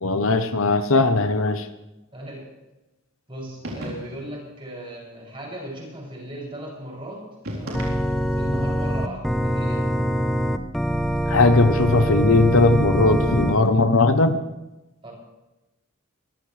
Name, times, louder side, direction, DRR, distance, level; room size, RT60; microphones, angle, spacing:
voice 1, 0.0-1.7 11.3-14.4, left 3 dB, 70° left, 10 dB, 1.0 m, -19 dB
voice 2, 2.1-2.4 3.3-7.2 7.5-7.9 8.2-9.8 15.0-15.1, right 1 dB, 25° right, -3 dB, 7.2 m, -36 dB
sound 1, 3.6-4.4 7.4-8.5, equal, 75° right, 4.0 m, -35 dB
Organ, 7.7-13.6, right 1 dB, ahead, 0.7 m, -23 dB
24.0 x 15.0 x 3.4 m, 1.0 s
head